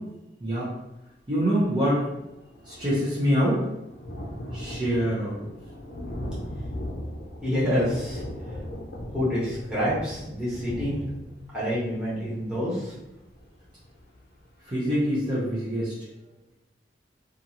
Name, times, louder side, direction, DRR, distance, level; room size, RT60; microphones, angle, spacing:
voice 1, 1.3-2.1 2.7-3.6 4.5-5.5 14.7-15.9, equal, 25° right, -10 dB, 0.6 m, -25 dB
Thunder, 1.6-1.7 1.9-14.5 15.0-15.1 15.4-15.5, left 1 dB, 55° left, 0.5 m, -38 dB
voice 2, 7.4-8.2 9.1-11.1 11.5-12.9, equal, 5° right, -10 dB, 1.1 m, -27 dB
2.6 x 2.4 x 2.8 m, 0.92 s
head